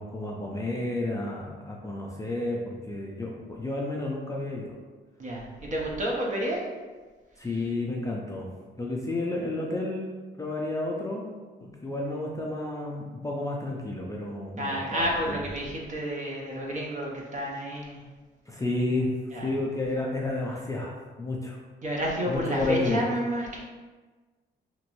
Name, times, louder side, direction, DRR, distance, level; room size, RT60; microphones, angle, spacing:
voice 1, 0.0-4.8 7.4-8.5 8.8-10.1 10.4-11.3 11.6-15.4 18.5-21.6 22.3-23.0, left 2 dB, 15° left, -2 dB, 0.4 m, -31 dB
voice 2, 5.2-6.6 14.6-18.0 19.3-19.5 21.8-23.6, equal, 40° right, -2 dB, 0.8 m, -30 dB
2.9 x 2.6 x 3.0 m, 1.3 s
cardioid pair, 90°, 20 cm